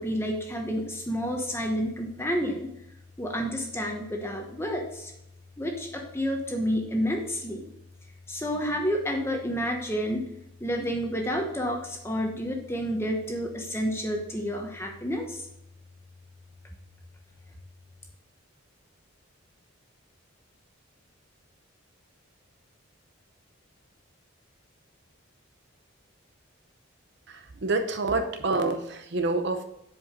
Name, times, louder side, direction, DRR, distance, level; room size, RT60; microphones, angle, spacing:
voice 1, 0.0-2.7 3.2-4.8 5.6-7.6 8.3-10.2 10.6-15.2, equal, 10° left, 2 dB, 1.1 m, -29 dB
voice 2, 27.3-29.6, right 3 dB, 55° right, 6 dB, 0.8 m, -27 dB
7.8 x 5.0 x 5.1 m, 0.82 s
head